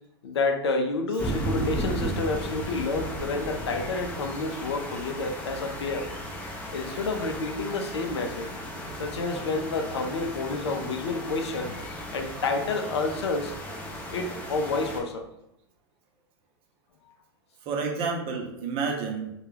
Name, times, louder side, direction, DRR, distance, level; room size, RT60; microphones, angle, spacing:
voice 1, 0.2-6.1 6.7-8.5 9.0-11.7 12.1-13.5 14.1-15.3, left 3 dB, 85° left, 5 dB, 0.4 m, -29 dB
sound 1, 1.2-15.0, equal, 10° left, 0.5 m, -35 dB
voice 2, 6.9-7.3 17.6-19.3, right 5 dB, 45° right, 2 dB, 0.6 m, -31 dB
2.2 x 2.2 x 3.2 m, 0.82 s
hypercardioid pair, 105°, 14 cm